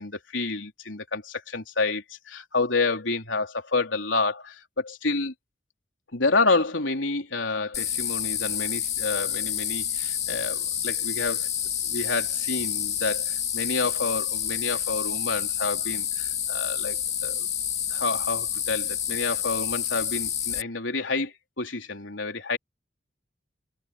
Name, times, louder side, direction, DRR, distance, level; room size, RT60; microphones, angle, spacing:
voice 1, 0.0-5.3 6.1-11.5 11.8-17.5 17.9-22.6, left 3 dB, 90° left, 3.7 m, -29 dB
sound 1, 7.7-20.6, left 9 dB, 35° left, 2.7 m, -29 dB
head